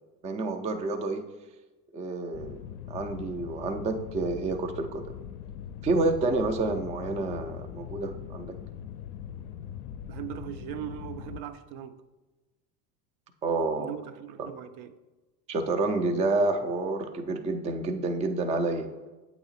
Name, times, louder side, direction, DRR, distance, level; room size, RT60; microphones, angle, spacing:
voice 1, 0.2-1.2 1.9-2.6 2.9-5.0 5.8-8.6 13.4-13.9 14.4-14.5 15.5-18.9, right 3 dB, 15° right, 0.3 m, -29 dB
sound 1, 2.3-11.4, left 9 dB, 65° left, 0.5 m, -41 dB
voice 2, 10.1-12.0 13.8-15.0, right 11 dB, 60° right, 0.6 m, -39 dB
8.1 x 3.0 x 4.1 m
hypercardioid pair, 70°, 50 cm